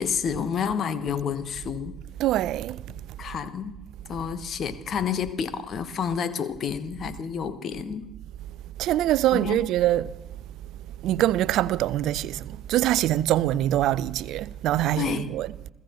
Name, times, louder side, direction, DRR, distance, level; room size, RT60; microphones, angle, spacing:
voice 1, 0.0-1.9 3.2-3.8 4.1-8.1 9.3-9.6 15.0-15.3, left 7 dB, 45° left, 1.1 m, -29 dB
voice 2, 2.2-2.8 8.8-10.1 11.0-15.5, right 13 dB, 55° right, 0.5 m, -24 dB
29.0 x 15.5 x 3.1 m
figure-of-eight pair, 50°, 0 cm